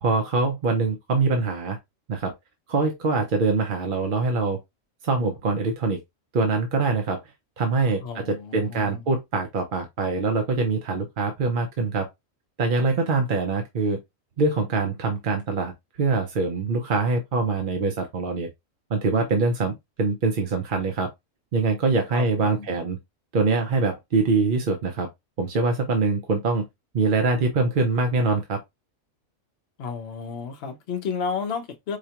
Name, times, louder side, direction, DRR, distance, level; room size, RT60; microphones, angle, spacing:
voice 1, 0.0-1.8 2.1-2.3 2.7-4.6 5.0-6.0 6.3-7.2 7.6-12.1 12.6-14.0 14.4-15.7 16.0-18.5 18.9-21.1 21.5-23.0 23.3-25.1 25.4-26.6 26.9-28.6, right 3 dB, 50° right, 0.7 m, -24 dB
voice 2, 8.0-9.0 22.1-22.7 29.8-32.0, left 6 dB, 60° left, 0.9 m, -32 dB
4.9 x 2.2 x 2.9 m
omnidirectional pair, 1.4 m